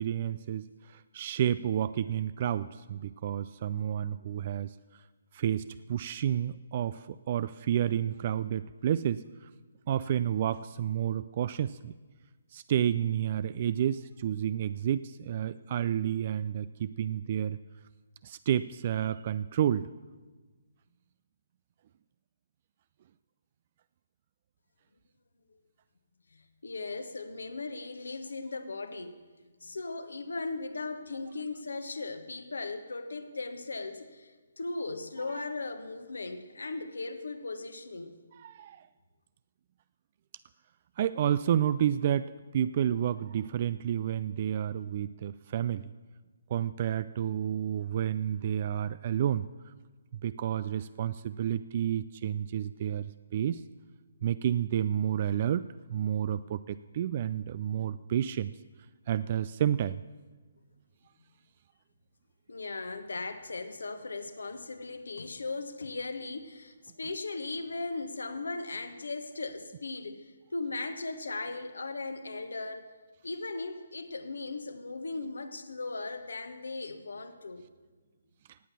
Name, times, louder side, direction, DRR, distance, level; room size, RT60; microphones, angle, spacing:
voice 1, 0.0-5.0 5.3-9.5 9.9-11.9 12.5-17.6 18.2-19.9 35.3-35.4 38.4-38.9 41.0-45.9 46.5-49.7 50.1-53.1 53.3-53.6 54.2-58.5 59.1-60.0 78.5-78.6, right 10 dB, 40° right, 15 dB, 0.3 m, -30 dB
voice 2, 26.3-29.1 29.6-38.2 62.5-72.9 73.2-77.6, left 3 dB, 65° left, 9 dB, 1.3 m, -38 dB
17.5 x 8.3 x 7.2 m, 1.3 s
figure-of-eight pair, 135°, 0 cm